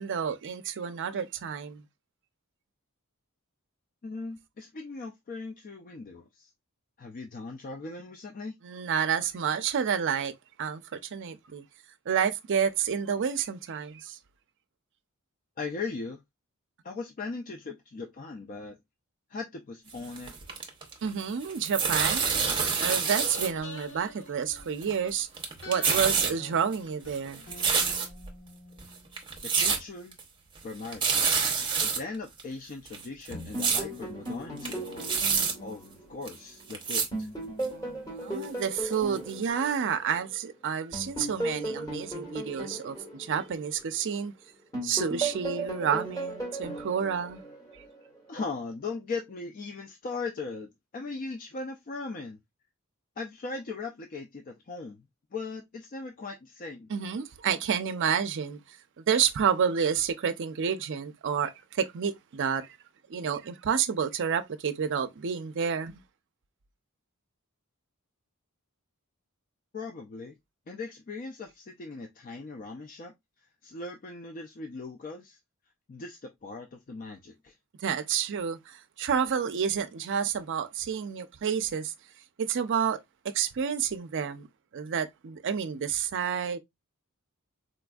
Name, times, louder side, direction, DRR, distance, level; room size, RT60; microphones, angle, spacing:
voice 1, 0.0-1.8 8.6-10.3 10.6-11.6 12.1-14.2 21.0-22.2 22.8-25.3 25.7-27.4 37.7-44.3 44.8-47.4 56.9-58.6 59.0-62.8 63.1-66.0 77.8-81.9 82.4-83.0 83.2-84.5 84.7-86.6, right 7 dB, 55° right, 0.5 m, -29 dB
voice 2, 4.0-6.5 7.0-8.5 15.6-16.2 16.8-18.8 19.3-20.3 29.6-30.2 30.6-31.1 31.8-35.2 35.6-37.3 48.3-52.4 53.2-55.0 55.3-56.9 69.7-70.4 70.7-73.1 73.6-75.4 75.9-77.5, left 3 dB, 40° left, 0.4 m, -39 dB
sound 1, 20.0-21.1 21.4-23.5 23.8-23.9 24.6-25.1 25.3-26.3 26.7-28.3 28.8-28.9 29.2-29.8 30.1-30.2 30.6-30.7 30.8-32.0 32.4-32.5 32.9-33.8 34.3-34.4 34.6-35.5 36.3-36.4 36.7-37.1 37.6-37.7 38.4-38.5 38.9-39.0 39.3-39.4, right 5 dB, 20° right, 0.8 m, -27 dB
sound 2, 22.2-25.2 25.6-29.4 29.7-29.8, left 2 dB, 60° left, 1.3 m, -47 dB
sound 3, 33.3-36.6 37.1-40.4 40.9-44.2 44.7-48.0, right 2 dB, 15° left, 1.5 m, -36 dB
4.0 x 2.5 x 2.3 m
head